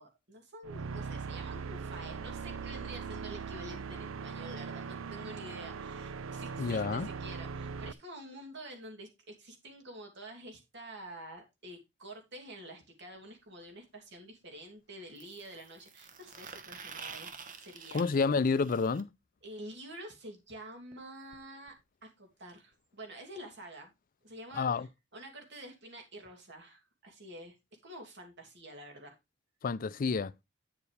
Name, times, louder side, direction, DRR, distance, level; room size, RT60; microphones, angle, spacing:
voice 1, 0.0-17.3 17.6-18.1 19.4-21.7 22.0-23.9 24.2-24.7 25.1-27.5 27.8-29.1, right 1 dB, 60° right, 2.8 m, -48 dB
sound 1, 0.6-7.9, right 5 dB, 85° right, 0.5 m, -40 dB
voice 2, 6.6-7.1 17.9-19.1 24.5-24.9 29.6-30.3, left 4 dB, 45° left, 0.4 m, -29 dB
sound 2, 13.1-13.2 15.2-19.0 20.9-21.0 21.3-21.4 21.7-21.8 22.7-22.8, right 6 dB, 45° right, 1.2 m, -48 dB
9.7 x 7.0 x 3.3 m
head